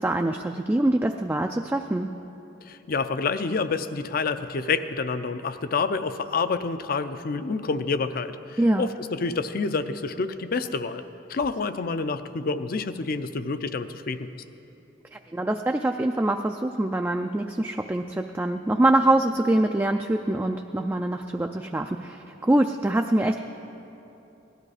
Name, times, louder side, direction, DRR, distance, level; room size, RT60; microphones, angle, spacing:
voice 1, 0.0-2.1 8.6-8.9 15.1-23.4, right 1 dB, 10° right, 4 dB, 0.3 m, -24 dB
voice 2, 2.7-11.0 11.3-14.3, left 4 dB, 50° left, 11 dB, 0.5 m, -28 dB
17.5 x 12.0 x 4.9 m, 2.9 s
head